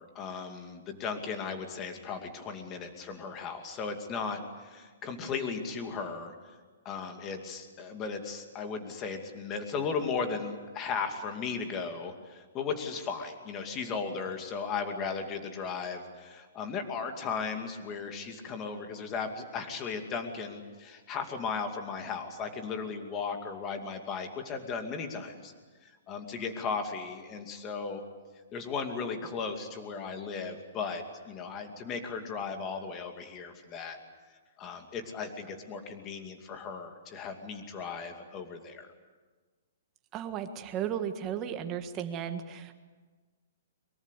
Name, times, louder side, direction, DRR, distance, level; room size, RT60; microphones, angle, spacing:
voice 1, 0.0-6.3 6.8-25.5 25.8-28.0 28.5-34.0 34.6-38.9, left 5 dB, 20° left, 5 dB, 2.5 m, -36 dB
voice 2, 40.1-42.7, right 9 dB, 20° right, 7 dB, 1.6 m, -35 dB
23.5 x 23.5 x 8.3 m, 1.4 s
hypercardioid pair, 165°, 0 cm